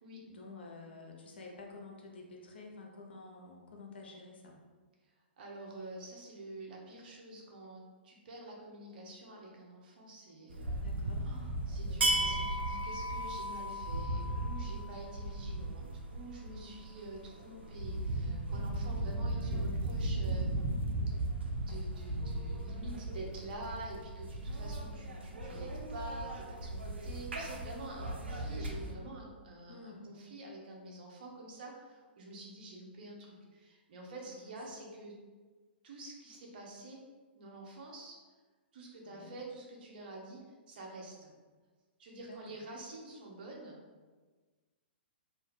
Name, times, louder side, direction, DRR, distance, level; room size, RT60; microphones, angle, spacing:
voice 1, 0.3-4.6 10.8-11.3 16.5-16.8 29.7-30.1 34.2-34.5 39.0-39.3 42.2-42.4, left 3 dB, 70° left, 0 dB, 0.8 m, -50 dB
voice 2, 5.0-10.8 11.2-20.6 21.5-35.1 35.8-37.0 37.3-38.2 38.7-40.4 40.7-41.3 42.0-43.8, right 2 dB, 55° right, -1 dB, 0.9 m, -48 dB
sound 1, 10.5-28.9, right 1 dB, 80° right, 0.6 m, -36 dB
2.7 x 2.6 x 4.1 m, 1.4 s
hypercardioid pair, 120°, 6 cm